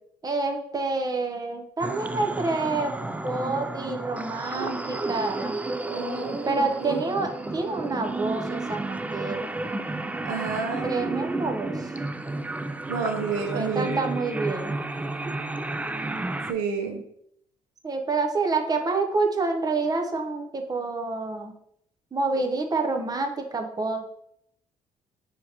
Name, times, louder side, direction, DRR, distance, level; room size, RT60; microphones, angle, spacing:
voice 1, 0.2-3.0 3.2-5.6 6.5-9.5 10.8-11.9 13.5-14.7 16.9-17.0 17.8-21.5 22.1-24.0, right 3 dB, 30° right, 4 dB, 0.7 m, -28 dB
sound 1, 1.8-16.5, right 2 dB, 10° right, 0.3 m, -32 dB
voice 2, 5.9-7.0 10.2-11.0 12.9-14.0 16.5-17.0, right 5 dB, 90° right, 4 dB, 0.7 m, -30 dB
5.5 x 2.8 x 2.9 m, 0.72 s
supercardioid pair, 70°, 13 cm